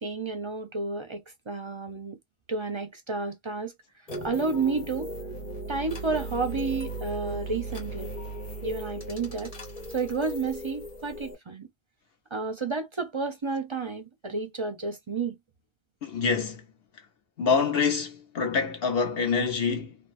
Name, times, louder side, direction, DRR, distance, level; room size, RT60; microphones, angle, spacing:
voice 1, 0.0-2.2 2.5-3.7 4.2-5.1 5.7-8.1 8.6-9.5 9.9-11.7 12.3-15.4, right 4 dB, 40° right, 0.4 m, -31 dB
sound 1, 4.1-11.3, right 2 dB, 35° left, 1.2 m, -37 dB
voice 2, 16.0-16.6 17.4-20.0, left 5 dB, 65° left, 1.1 m, -26 dB
3.3 x 2.0 x 2.5 m
omnidirectional pair, 1.1 m